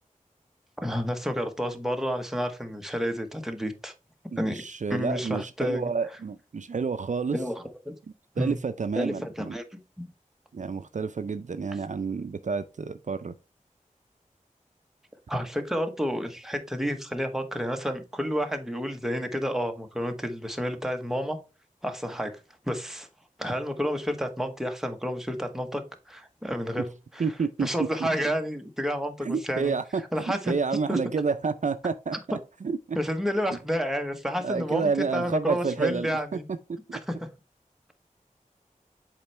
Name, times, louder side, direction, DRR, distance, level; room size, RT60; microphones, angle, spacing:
voice 1, 0.8-3.9 4.4-4.6 4.9-5.8 7.3-7.9 8.4-8.5 9.0-9.6 10.0-10.1 15.3-21.4 21.8-22.4 22.7-23.1 23.4-27.3 27.6-29.7 30.1-30.5 30.9-31.0 32.9-36.4 36.9-37.2, equal, 5° right, 1.1 m, -30 dB
voice 2, 4.3-7.4 8.4-9.5 10.5-13.3 27.2-27.7 29.2-33.0 34.4-36.1 36.7-37.0, right 5 dB, 65° right, 0.4 m, -29 dB
7.2 x 4.4 x 3.3 m
wide cardioid pair, 55°, 14 cm